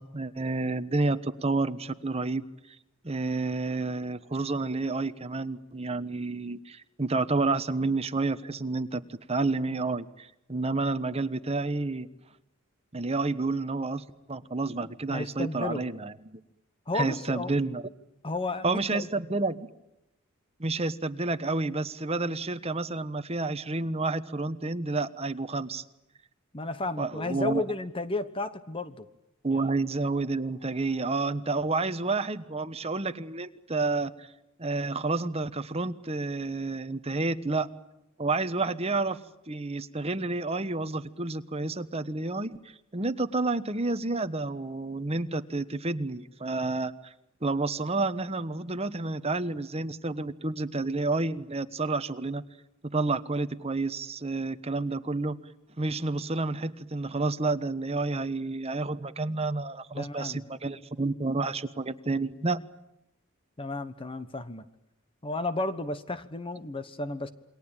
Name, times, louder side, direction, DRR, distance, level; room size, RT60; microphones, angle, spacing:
voice 1, 0.0-2.4 3.0-12.1 12.9-16.1 16.9-17.8 18.6-19.7 20.6-25.8 27.0-27.6 29.4-34.3 34.6-37.7 38.2-39.2 39.5-42.6 42.9-47.1 47.4-52.4 52.9-55.4 55.8-62.6, right 3 dB, 30° right, 10 dB, 1.2 m, -30 dB
voice 2, 15.1-15.9 16.9-17.5 18.2-19.1 26.5-29.1 29.5-29.6 60.0-60.4 63.6-64.7 65.2-67.3, left 2 dB, 25° left, 12 dB, 1.2 m, -33 dB
28.5 x 22.5 x 8.9 m, 0.87 s
head